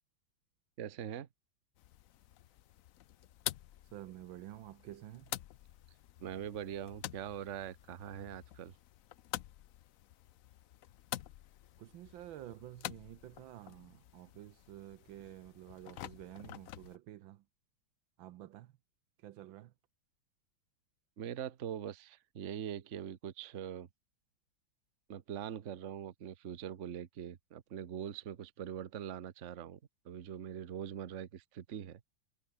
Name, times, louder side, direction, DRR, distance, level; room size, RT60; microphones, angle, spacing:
voice 1, 0.8-1.3 6.2-8.7 21.2-23.9 25.1-29.8 30.0-32.0, right 9 dB, 45° right, 1.1 m, -42 dB
sound 1, 1.7-17.0, left 13 dB, 85° left, 0.7 m, -48 dB
voice 2, 3.9-5.4 11.8-17.4 18.2-18.7 19.2-19.7, right 13 dB, 75° right, 1.5 m, -50 dB
omnidirectional pair, 2.2 m